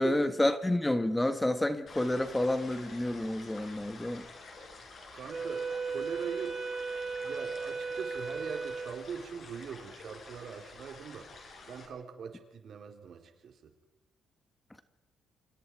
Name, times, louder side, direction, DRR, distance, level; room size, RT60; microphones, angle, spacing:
voice 1, 0.0-4.3, left 1 dB, 10° left, 1.5 m, -29 dB
sound 1, 1.9-11.9, left 3 dB, 50° left, 6.8 m, -50 dB
voice 2, 5.1-6.6 7.2-11.3 11.7-13.6, right 6 dB, 60° right, 3.9 m, -42 dB
Wind instrument woodwind instrument, 5.3-9.1, right 4 dB, 40° right, 7.7 m, -36 dB
29.0 x 26.0 x 4.8 m
cardioid pair, 90°, 0 cm